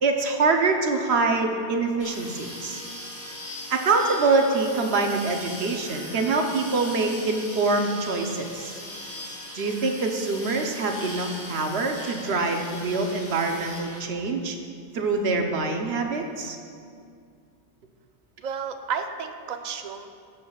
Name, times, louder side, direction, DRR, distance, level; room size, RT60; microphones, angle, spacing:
voice 1, 0.0-2.8 3.7-8.7 9.5-14.6 14.9-16.6, right 3 dB, 65° right, 3 dB, 1.0 m, -25 dB
sound 1, 2.0-14.0, left 1 dB, 15° left, 1.4 m, -39 dB
voice 2, 18.4-20.1, right 6 dB, 50° right, 6 dB, 0.6 m, -32 dB
17.5 x 7.2 x 2.3 m, 2.3 s
omnidirectional pair, 1.2 m